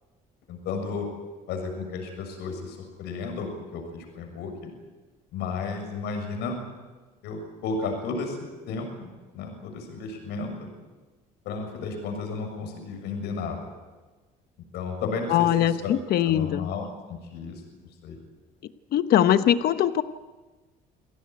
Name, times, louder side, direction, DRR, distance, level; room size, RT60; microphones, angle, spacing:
voice 1, 0.5-1.1 1.5-4.7 5.3-6.5 7.2-8.4 8.7-9.1 9.3-10.7 11.5-13.7 14.7-15.9 16.3-17.6 18.0-18.2, left 4 dB, 85° left, 4 dB, 6.8 m, -33 dB
voice 2, 15.3-16.7 18.9-20.0, left 11 dB, 65° left, 11 dB, 1.1 m, -21 dB
27.5 x 17.5 x 9.3 m, 1.3 s
cardioid pair, 110°, 17 cm